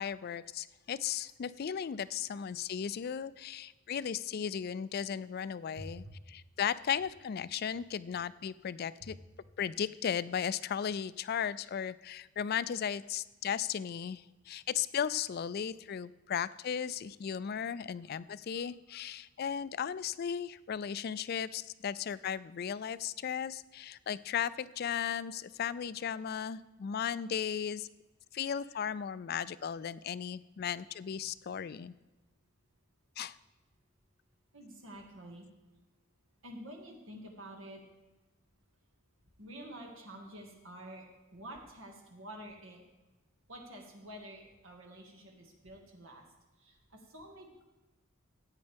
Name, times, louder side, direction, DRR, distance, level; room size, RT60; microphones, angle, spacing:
voice 1, 0.0-9.2 9.6-27.9 28.3-31.9 33.2-33.4, left 8 dB, 50° left, 17 dB, 0.3 m, -36 dB
voice 2, 5.8-6.1 9.0-9.1 18.9-19.0 34.5-35.5 36.4-37.8 39.4-41.0 41.3-42.8 43.5-46.2 46.6-47.6, right 1 dB, 85° right, 1 dB, 2.0 m, -48 dB
14.5 x 9.0 x 3.5 m, 1.1 s
head